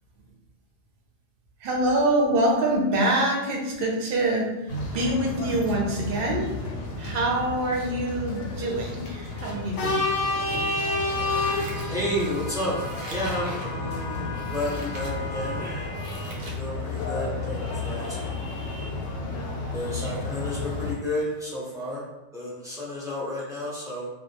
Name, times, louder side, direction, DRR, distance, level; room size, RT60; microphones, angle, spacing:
voice 1, 1.6-6.5 7.0-10.0 19.2-19.3, right 1 dB, 60° right, -1 dB, 0.7 m, -25 dB
sound 1, 4.7-20.9, left 2 dB, 85° left, 0.9 m, -31 dB
Scissors, 11.2-12.3 12.7-13.7 14.3-15.1 15.6-16.6 17.0-17.1, right 1 dB, 80° right, 0.9 m, -44 dB
voice 2, 11.5-12.8 13.1-18.4 18.7-19.0 19.7-22.0 22.3-24.1, left 1 dB, 5° right, -8 dB, 0.4 m, -32 dB
2.2 x 2.1 x 2.7 m, 1.0 s
omnidirectional pair, 1.2 m